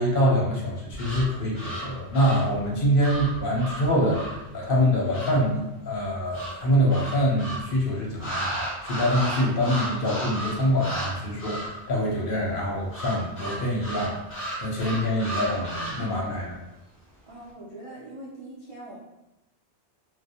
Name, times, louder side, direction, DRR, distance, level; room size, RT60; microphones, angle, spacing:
voice 1, 0.0-14.1 14.6-16.6, equal, 60° left, -3 dB, 0.7 m, -25 dB
sound 1, 0.9-5.5 6.3-7.7 8.2-11.1 11.4-11.8 12.9-16.2, right 1 dB, 15° left, 0.7 m, -34 dB
voice 2, 17.3-19.0, right 1 dB, 55° right, -6 dB, 0.3 m, -42 dB
2.4 x 2.1 x 2.7 m, 0.93 s
omnidirectional pair, 1.2 m